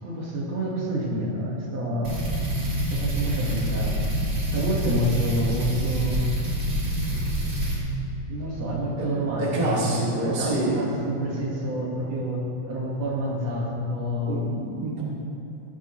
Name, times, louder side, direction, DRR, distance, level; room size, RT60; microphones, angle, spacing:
voice 1, 0.0-2.3 2.9-4.0 4.5-6.3 8.3-14.5, equal, 60° right, -4 dB, 2.6 m, -28 dB
sound 1, 2.0-7.8, equal, 35° right, 3.4 m, -27 dB
voice 2, 9.4-10.8 14.2-15.0, right 2 dB, 15° right, -6 dB, 1.9 m, -27 dB
18.0 x 11.0 x 3.1 m, 2.7 s
omnidirectional pair, 3.5 m